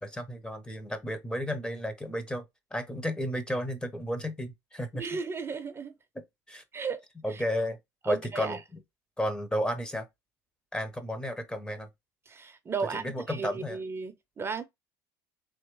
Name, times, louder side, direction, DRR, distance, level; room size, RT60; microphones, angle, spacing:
voice 1, 0.0-2.4 2.7-5.0 6.1-6.6 7.2-7.8 8.0-8.8 9.2-10.1 10.7-11.9 12.9-13.8, equal, 10° left, 0.8 m, -33 dB
voice 2, 4.9-5.9 6.7-7.0 7.3-7.4 8.0-8.6 12.3-14.6, right 5 dB, 25° right, 0.6 m, -35 dB
3.5 x 2.9 x 3.1 m
hypercardioid pair, 85°, 9 cm